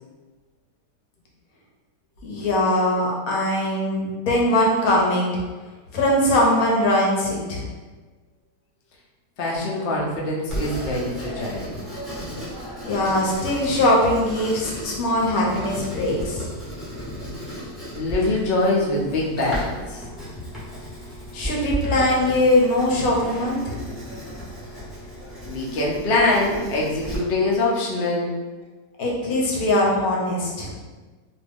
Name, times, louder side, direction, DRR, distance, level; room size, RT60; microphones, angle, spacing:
voice 1, 2.2-5.3 5.9-7.6 12.8-16.4 21.3-23.8 29.0-30.7, left 1 dB, 65° left, -2 dB, 1.0 m, -21 dB
voice 2, 9.4-11.8 17.9-20.0 25.4-28.4, left 2 dB, 80° left, -4 dB, 0.5 m, -23 dB
Writing, 10.5-27.2, equal, ahead, 0.7 m, -35 dB
2.6 x 2.5 x 3.3 m, 1.3 s
omnidirectional pair, 1.8 m